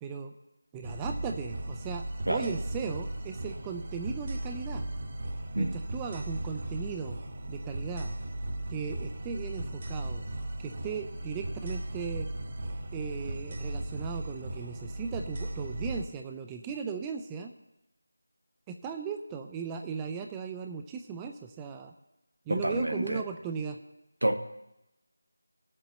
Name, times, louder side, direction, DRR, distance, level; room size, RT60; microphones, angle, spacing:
voice 1, 0.0-0.3 0.7-4.9 5.6-7.2 7.5-8.2 8.7-10.3 10.6-12.3 12.9-17.5 18.7-21.9 22.5-23.8, right 6 dB, 10° right, 0.4 m, -37 dB
sound 1, 0.8-16.1, right 1 dB, 40° right, 1.1 m, -37 dB
voice 2, 22.5-23.2 24.2-24.4, right 1 dB, 85° right, 1.0 m, -28 dB
19.0 x 7.5 x 3.1 m
figure-of-eight pair, 165°, 0 cm